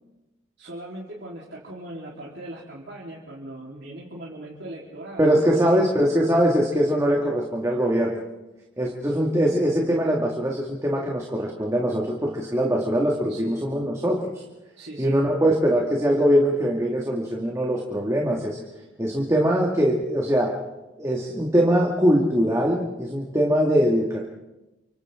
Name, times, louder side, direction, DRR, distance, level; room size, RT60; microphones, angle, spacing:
voice 1, 0.6-5.8 13.3-13.7 14.8-15.3, right 1 dB, 60° right, -6 dB, 4.0 m, -39 dB
voice 2, 5.2-8.2 8.8-14.3 15.0-18.6 19.0-20.5 21.0-24.3, equal, 15° right, -2 dB, 2.2 m, -22 dB
29.5 x 26.5 x 3.8 m, 1.0 s
head